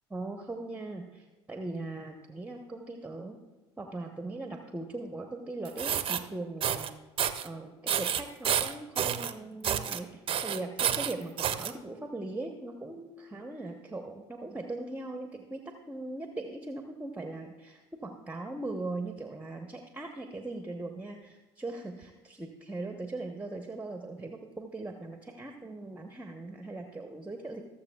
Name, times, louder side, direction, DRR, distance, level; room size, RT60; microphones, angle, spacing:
voice 1, 0.1-3.4 3.8-7.0 7.4-27.6, right 2 dB, 10° right, 4 dB, 0.9 m, -40 dB
sound 1, 5.6-6.2 6.6-6.9 7.2-7.5 7.9-9.3 9.6-10.0 10.3-11.7, right 9 dB, 40° right, 0.7 m, -29 dB
19.5 x 7.0 x 2.3 m, 1.2 s
hypercardioid pair, 70°, 14 cm